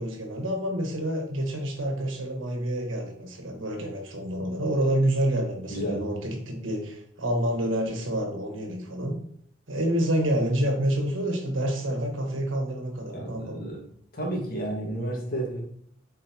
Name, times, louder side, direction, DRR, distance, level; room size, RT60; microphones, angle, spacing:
voice 1, 0.0-9.2 9.7-13.6, right 1 dB, 90° right, 3 dB, 1.5 m, -28 dB
voice 2, 5.7-6.1 13.1-13.8 14.1-15.6, right 1 dB, 50° left, -1 dB, 1.9 m, -31 dB
7.6 x 4.6 x 3.0 m, 0.65 s
head